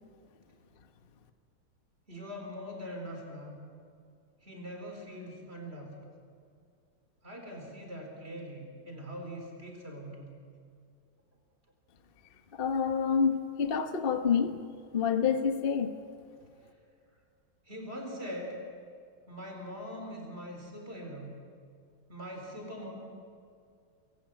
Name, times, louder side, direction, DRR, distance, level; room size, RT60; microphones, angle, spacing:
voice 1, 2.1-3.6 4.4-5.9 7.2-10.4 17.7-18.5 19.3-21.3 22.1-22.9, equal, 30° right, 2 dB, 4.5 m, -42 dB
voice 2, 12.5-14.6 14.9-15.9, left 6 dB, 35° left, 8 dB, 1.1 m, -28 dB
22.5 x 17.0 x 9.5 m, 2.3 s
omnidirectional pair, 2.3 m